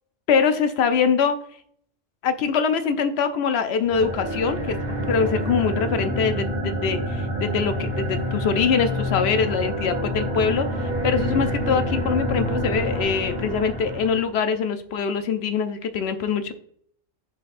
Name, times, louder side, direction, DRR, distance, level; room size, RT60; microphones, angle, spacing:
voice 1, 0.3-1.4 2.2-4.8 5.1-16.5, left 6 dB, 65° left, 9 dB, 0.8 m, -23 dB
sound 1, 3.8-14.3, equal, 50° right, 1.7 m, -27 dB
11.0 x 4.0 x 2.5 m, 0.65 s
omnidirectional pair, 1.3 m